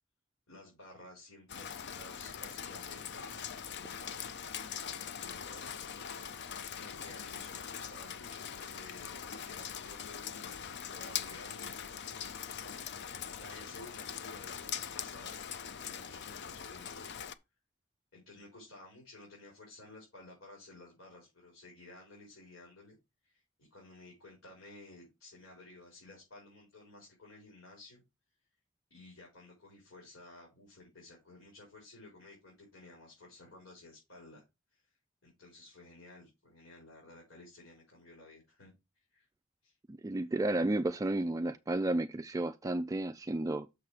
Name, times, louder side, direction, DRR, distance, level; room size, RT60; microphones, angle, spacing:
voice 1, 0.5-4.2 5.2-5.7 6.7-9.2 9.4-11.7 13.3-15.4 15.6-17.1 18.1-23.0 23.2-28.0 28.9-34.4 34.7-34.9 35.2-38.7 39.1-39.3 39.6-39.7, left 2 dB, 75° left, 4.3 m, -54 dB
Rain, 1.5-17.3, left 8 dB, 60° left, 0.6 m, -42 dB
voice 2, 39.9-43.7, right 2 dB, 15° right, 0.3 m, -32 dB
6.7 x 5.8 x 4.8 m
head